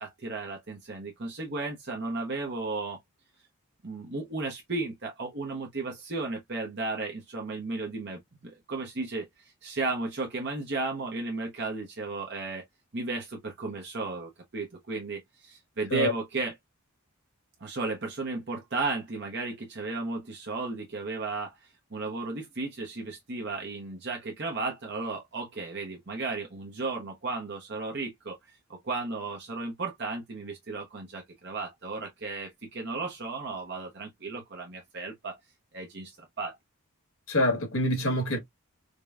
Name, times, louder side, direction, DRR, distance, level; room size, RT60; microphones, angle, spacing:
voice 1, 0.0-3.0 3.8-12.6 12.9-16.5 17.6-35.4 35.7-36.6, right 3 dB, 50° right, 0.9 m, -34 dB
voice 2, 37.3-38.4, left 1 dB, 70° left, 1.6 m, -26 dB
5.0 x 2.2 x 2.4 m
head